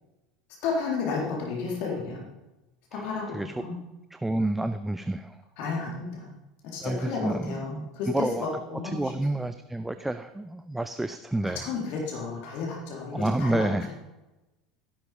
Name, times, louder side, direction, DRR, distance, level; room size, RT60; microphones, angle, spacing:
voice 1, 0.6-2.2 2.9-3.8 5.6-6.3 6.6-9.1 11.4-13.7, left 4 dB, 55° left, -2 dB, 4.0 m, -32 dB
voice 2, 2.9-3.6 4.1-5.4 6.8-7.9 8.1-8.5 8.8-11.7 13.1-13.9, right 2 dB, 5° right, 10 dB, 0.6 m, -29 dB
14.0 x 12.0 x 5.2 m, 1.0 s
figure-of-eight pair, 75°, 3 cm